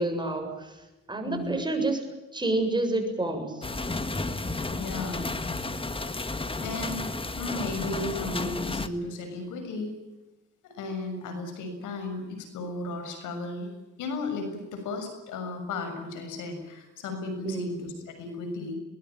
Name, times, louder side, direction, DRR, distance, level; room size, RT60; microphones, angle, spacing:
voice 1, 0.0-2.0 2.3-3.6 17.4-17.7, right 2 dB, 15° right, 5 dB, 7.3 m, -29 dB
voice 2, 1.3-1.6 4.7-5.3 6.6-10.0 10.6-13.7 14.0-18.7, left 2 dB, 85° left, 7 dB, 6.9 m, -35 dB
sound 1, 3.6-8.9, left 2 dB, 20° left, 1.7 m, -32 dB
22.0 x 21.5 x 9.1 m, 1.1 s
cardioid pair, 90°, 30 cm